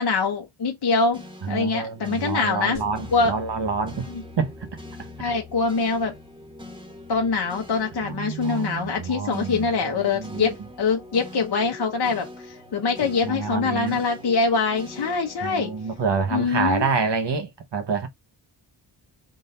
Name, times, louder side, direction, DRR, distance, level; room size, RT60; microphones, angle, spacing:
voice 1, 0.0-2.8 3.1-3.4 4.1-4.2 5.2-6.2 7.1-15.7 16.3-16.9, left 4 dB, 55° left, 0.9 m, -24 dB
sound 1, 1.1-17.4, left 1 dB, 10° right, 1.2 m, -44 dB
voice 2, 1.4-4.1 4.4-4.5 8.0-10.5 13.2-14.0 15.4-18.1, right 5 dB, 60° right, 0.9 m, -27 dB
sound 2, 2.7-7.1, left 6 dB, 85° left, 0.8 m, -45 dB
3.8 x 2.6 x 4.0 m
wide cardioid pair, 70°, 48 cm